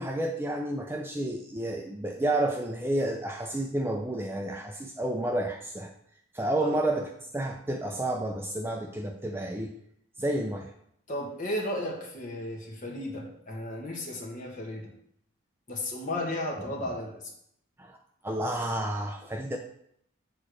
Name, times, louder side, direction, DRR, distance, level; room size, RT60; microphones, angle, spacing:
voice 1, 0.0-5.9 6.3-7.1 7.3-9.7 10.2-10.7 17.8-18.0 18.2-19.6, right 1 dB, 10° right, 3 dB, 0.4 m, -30 dB
voice 2, 11.1-14.9 15.7-17.2, left 1 dB, 40° left, -1 dB, 1.7 m, -34 dB
6.9 x 4.2 x 6.4 m, 0.71 s
head